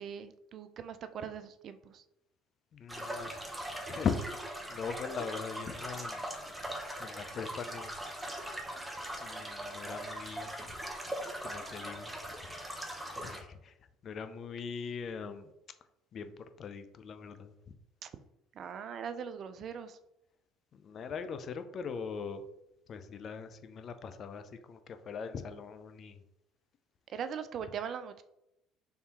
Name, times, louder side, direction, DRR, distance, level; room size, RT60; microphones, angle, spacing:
voice 1, 0.0-2.0 18.0-18.1 18.6-20.0 27.1-28.2, right 7 dB, 50° right, 11 dB, 0.4 m, -40 dB
voice 2, 2.7-3.4 3.9-4.1 4.7-6.3 7.0-7.9 9.2-10.5 11.4-12.1 13.2-13.7 14.0-15.5 16.1-16.3 16.6-17.5 20.8-22.4 22.9-26.2, left 6 dB, 50° left, 10 dB, 0.4 m, -40 dB
sound 1, 2.9-13.4, right 1 dB, 15° right, 0.9 m, -41 dB
4.3 x 3.3 x 2.9 m, 0.85 s
hypercardioid pair, 70°, 0 cm